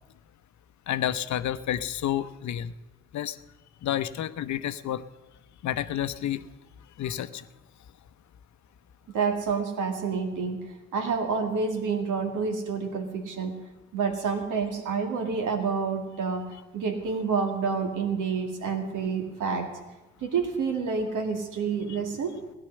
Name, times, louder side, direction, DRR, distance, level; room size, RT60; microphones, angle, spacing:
voice 1, 0.9-2.7 3.1-3.4 3.8-5.0 5.6-6.4 7.0-7.4, left 11 dB, 60° left, 13 dB, 0.8 m, -30 dB
voice 2, 9.1-10.6 10.9-13.5 13.9-16.4 16.7-19.7 20.2-22.4, right 5 dB, 70° right, 5 dB, 2.2 m, -28 dB
16.5 x 10.5 x 6.5 m, 1.1 s
hypercardioid pair, 50°, 32 cm